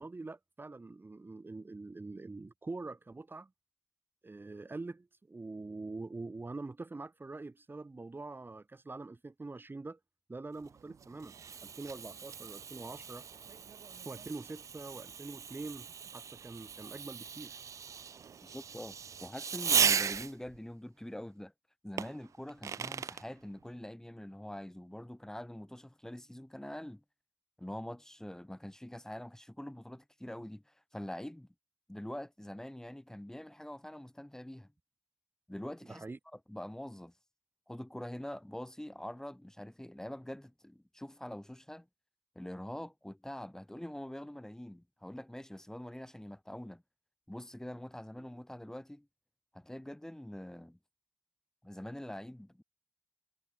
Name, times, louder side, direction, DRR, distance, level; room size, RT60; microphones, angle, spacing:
voice 1, 0.0-3.5 4.2-10.0 10.3-11.3 11.6-13.2 14.0-17.6 35.9-36.2, right 3 dB, 40° right, 2.9 m, -44 dB
Fireworks, 10.6-20.6 22.0-23.2, right 7 dB, 85° right, 0.9 m, -36 dB
voice 2, 18.4-21.5 21.8-27.0 27.6-31.5 31.9-34.7 35.5-36.0 36.3-37.1 37.7-41.9 42.3-46.8 47.3-49.1 49.5-50.8 51.6-52.6, left 1 dB, 10° left, 4.6 m, -44 dB
cardioid pair, 45°, 5 cm